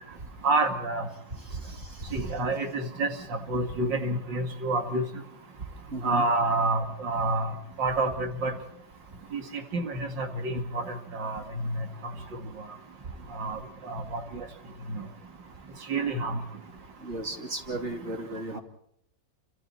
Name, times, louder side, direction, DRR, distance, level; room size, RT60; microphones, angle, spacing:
voice 1, 0.4-1.1 2.1-5.1 6.0-7.5 7.8-8.5 9.3-9.4 9.7-11.7 13.3-14.4 14.9-15.0 15.9-16.4, right 2 dB, 80° right, 6 dB, 2.8 m, -28 dB
voice 2, 1.5-2.1 5.9-6.2 17.0-18.6, right 2 dB, 35° right, 4 dB, 3.3 m, -35 dB
29.5 x 25.5 x 4.2 m, 0.71 s
omnidirectional pair, 1.9 m